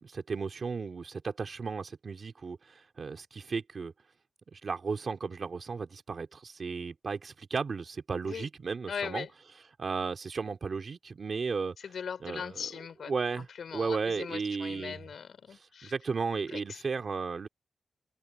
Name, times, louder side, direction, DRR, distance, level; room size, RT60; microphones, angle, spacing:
voice 1, 0.0-3.9 4.5-9.3 9.8-11.7 12.2-12.7 13.1-13.5 13.7-15.1 15.5-17.5, right 5 dB, 45° right, 3.3 m, -34 dB
voice 2, 8.9-9.3 11.8-13.1 13.6-15.9 16.5-16.6, left 7 dB, 80° left, 4.2 m, -39 dB
open air
wide cardioid pair, 175°, 0 cm